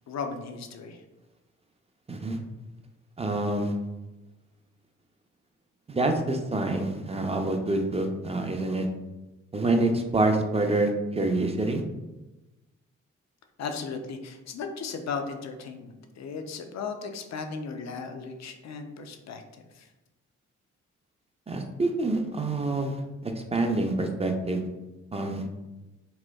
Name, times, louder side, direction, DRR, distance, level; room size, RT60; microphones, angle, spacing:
voice 1, 0.1-1.0 13.6-19.9, left 5 dB, 55° left, 5 dB, 0.5 m, -36 dB
voice 2, 3.2-3.7 5.9-8.9 9.5-11.8 21.5-23.0 23.2-24.6 25.1-25.4, right 2 dB, 20° right, 4 dB, 0.5 m, -26 dB
4.2 x 2.2 x 2.2 m, 1.1 s
supercardioid pair, 45°, 32 cm